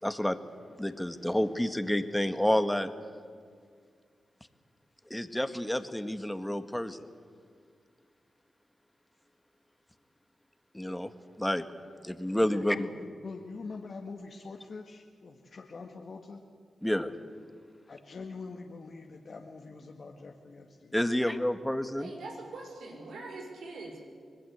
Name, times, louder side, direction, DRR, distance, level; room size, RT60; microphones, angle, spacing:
voice 1, 0.0-0.4 0.8-2.9 5.1-7.1 10.7-11.1 11.4-11.6 12.0-12.8 16.8-17.1 20.9-22.1, left 1 dB, 10° left, 10 dB, 1.8 m, -29 dB
voice 2, 12.5-16.4 17.9-21.0, left 4 dB, 60° left, 2 dB, 1.9 m, -44 dB
voice 3, 22.0-24.0, right 3 dB, 90° right, 1 dB, 5.7 m, -43 dB
25.0 x 19.5 x 8.2 m, 2.1 s
cardioid pair, 55°, 0 cm